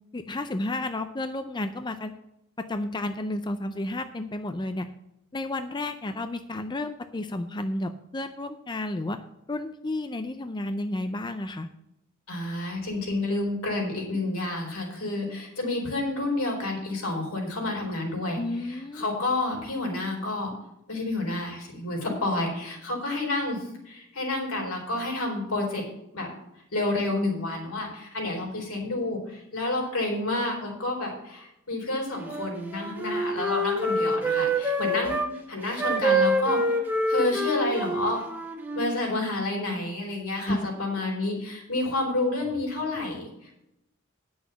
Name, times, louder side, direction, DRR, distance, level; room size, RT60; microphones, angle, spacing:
voice 1, 0.1-2.1 2.6-4.9 5.3-9.2 9.5-11.7 18.3-19.1 40.5-40.7, left 2 dB, 20° left, 8 dB, 0.5 m, -32 dB
voice 2, 12.3-18.4 18.7-20.5 20.9-25.8 26.1-26.3 26.7-36.6 37.1-38.2 38.7-43.6, left 2 dB, 85° left, 0 dB, 4.0 m, -29 dB
Wind instrument woodwind instrument, 32.2-35.3 35.8-38.9, right 1 dB, 10° right, 1.2 m, -26 dB
9.9 x 6.3 x 6.9 m, 0.84 s
head